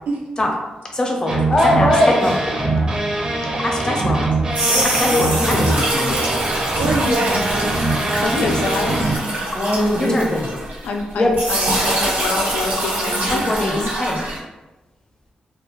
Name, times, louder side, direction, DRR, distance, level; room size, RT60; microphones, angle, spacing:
voice 1, 0.9-2.5 3.6-4.2 4.7-6.3 8.3-8.5 9.5-10.5 11.2-11.4 13.3-14.2, left 1 dB, 30° left, 0 dB, 0.6 m, -20 dB
sound 1, 1.3-9.2, right 2 dB, 30° right, 0.5 m, -22 dB
sound 2, 4.3-11.0 11.3-14.4, right 1 dB, 70° right, 1.1 m, -24 dB
voice 2, 4.9-5.3 6.1-6.3 8.2-9.2 10.8-13.9, left 3 dB, 90° left, 2 dB, 0.4 m, -27 dB
voice 3, 6.7-7.9 12.5-13.1 13.7-14.1, right 1 dB, 85° right, -1 dB, 0.5 m, -26 dB
2.3 x 2.1 x 3.0 m, 1.1 s
cardioid pair, 95°, 3 cm